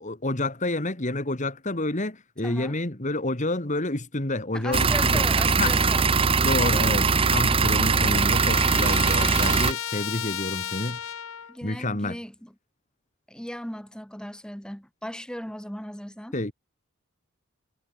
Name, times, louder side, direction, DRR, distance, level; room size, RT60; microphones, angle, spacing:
voice 1, 0.0-5.2 5.6-5.8 6.1-11.0 11.6-12.2 16.3-16.5, left 2 dB, 35° left, 2.4 m, -29 dB
voice 2, 2.4-2.8 4.5-6.1 11.5-12.5 13.3-16.4, equal, 5° left, 2.2 m, -37 dB
sound 1, 4.7-9.7, right 4 dB, 25° right, 0.7 m, -21 dB
Trumpet, 7.1-11.6, left 9 dB, 90° left, 1.1 m, -35 dB
head